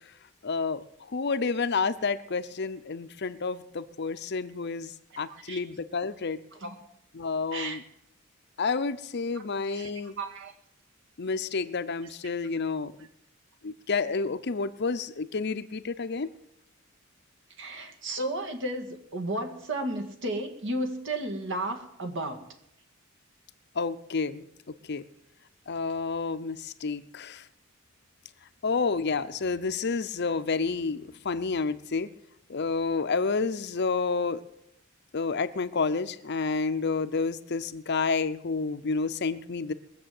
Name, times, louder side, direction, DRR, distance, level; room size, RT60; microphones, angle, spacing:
voice 1, 0.4-6.4 7.1-7.8 8.6-10.2 11.2-12.9 13.6-16.3 23.8-25.0 25.7-27.4 28.6-32.1 32.5-34.4 35.1-39.7, left 4 dB, 55° left, 12 dB, 0.7 m, -30 dB
voice 2, 5.1-5.6 6.6-6.8 7.5-7.8 9.7-9.9 10.2-10.5 17.6-22.4, right 1 dB, 60° right, 5 dB, 2.1 m, -33 dB
21.0 x 7.4 x 7.8 m, 0.78 s
head